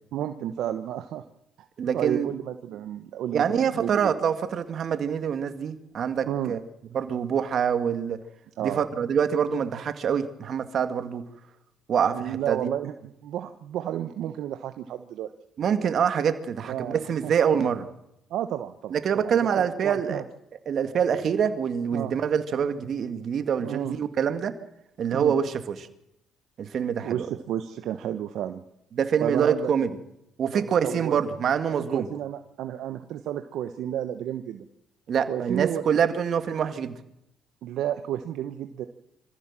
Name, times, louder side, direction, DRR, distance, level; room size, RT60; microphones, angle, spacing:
voice 1, 0.1-1.2 1.9-4.2 6.3-6.5 8.6-8.9 12.1-15.3 16.7-17.3 18.3-20.2 21.9-22.1 23.6-24.0 25.1-25.3 27.0-28.6 29.2-29.7 30.5-31.2 31.9-34.7 35.3-35.8 37.6-38.9, right 11 dB, 75° right, 8 dB, 1.1 m, -31 dB
voice 2, 1.8-2.3 3.3-6.6 6.9-8.2 8.6-11.3 11.9-12.7 15.6-17.9 18.9-20.2 20.7-24.5 25.0-25.9 26.6-27.3 29.0-30.0 30.4-32.1 35.1-37.0, right 7 dB, 60° right, 9 dB, 2.1 m, -25 dB
25.0 x 15.0 x 7.5 m, 0.84 s
supercardioid pair, 75°, 0 cm